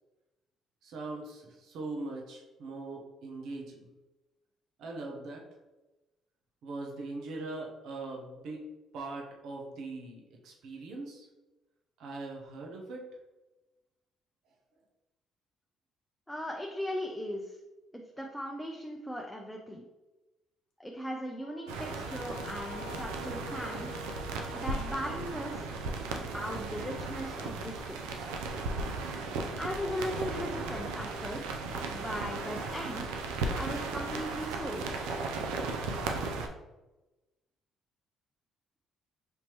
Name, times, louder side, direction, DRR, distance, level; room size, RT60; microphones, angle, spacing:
voice 1, 0.8-3.9 4.8-5.4 6.6-8.6 8.9-11.3 12.0-13.0, right 2 dB, 70° right, 0 dB, 0.8 m, -41 dB
voice 2, 16.3-17.6 17.9-19.8 20.8-23.9 24.5-25.7 26.3-28.3 29.6-31.6 31.9-33.1 33.5-34.9, equal, 5° left, 0 dB, 0.6 m, -38 dB
sound 1, 21.4-25.8, left 3 dB, 65° left, 0.9 m, -48 dB
sound 2, 21.7-36.5, right 3 dB, 85° right, 0.5 m, -36 dB
5.4 x 2.9 x 3.0 m, 1.1 s
supercardioid pair, 65°, 0 cm